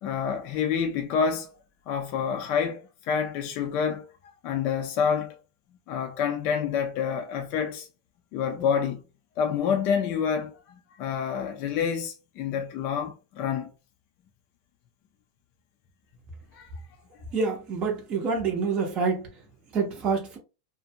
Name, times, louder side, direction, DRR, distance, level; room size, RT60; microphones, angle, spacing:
voice 1, 0.0-1.5 1.9-4.1 4.4-5.4 5.9-7.9 8.3-9.0 9.4-13.7 16.5-16.7, left 7 dB, 40° left, 0.4 m, -28 dB
voice 2, 17.3-19.3 19.7-20.4, right 4 dB, 30° right, 0.6 m, -27 dB
2.5 x 2.1 x 2.6 m
supercardioid pair, 155°, 3 cm